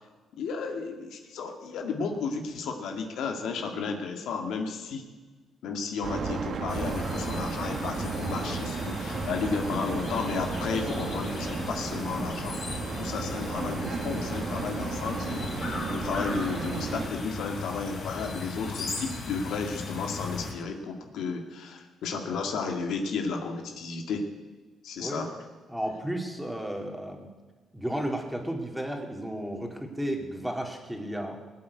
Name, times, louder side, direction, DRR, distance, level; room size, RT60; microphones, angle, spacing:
voice 1, 0.4-5.0 5.6-12.6 13.0-24.3 24.8-25.4, left 4 dB, 80° left, 4 dB, 2.0 m, -33 dB
sound 1, 6.0-17.1, right 5 dB, 55° right, 1.6 m, -34 dB
sound 2, 6.7-20.5, left 3 dB, 55° left, 4.3 m, -36 dB
voice 2, 25.7-27.3 27.7-31.4, right 1 dB, 5° right, 2 dB, 2.9 m, -33 dB
20.0 x 8.5 x 8.4 m, 1.3 s
cardioid pair, 90°, 0 cm